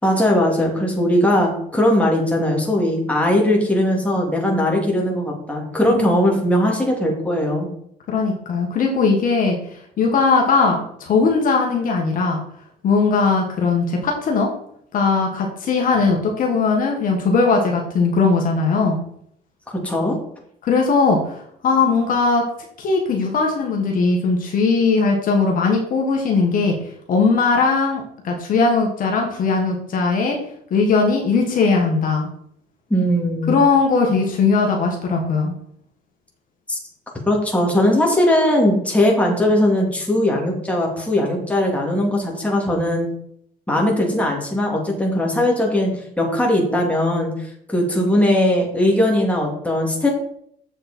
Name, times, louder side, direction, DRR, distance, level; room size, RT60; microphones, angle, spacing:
voice 1, 0.0-7.7 19.8-20.2 32.9-33.6 36.7-36.8 37.3-43.1 43.7-45.9 46.2-50.1, left 1 dB, 10° left, -1 dB, 2.7 m, -19 dB
voice 2, 8.1-9.6 10.0-12.4 12.8-14.5 14.9-19.0 20.6-21.4 21.6-22.4 22.8-26.7 27.1-30.4 30.7-32.3 33.5-35.5, left 4 dB, 55° left, 1 dB, 1.7 m, -19 dB
7.7 x 6.6 x 4.4 m, 0.68 s
cardioid pair, 110°, 17 cm